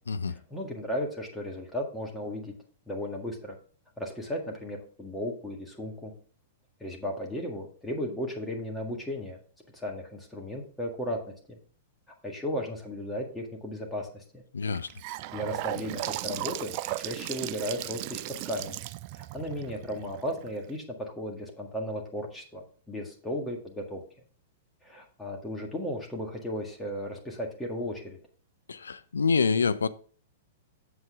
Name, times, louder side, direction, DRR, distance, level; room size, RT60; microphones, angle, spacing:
voice 1, 0.3-2.5 2.9-3.6 4.0-6.1 6.8-9.4 9.7-11.6 12.2-14.4 15.3-18.8 19.1-24.0 24.8-28.2, equal, 5° left, 1.7 m, -35 dB
voice 2, 14.5-14.9 28.7-29.9, left 5 dB, 70° left, 0.4 m, -26 dB
Gurgling / Sink (filling or washing) / Bathtub (filling or washing), 14.6-20.7, right 16 dB, 40° right, 0.3 m, -36 dB
7.9 x 7.4 x 3.6 m
figure-of-eight pair, 100°, 0 cm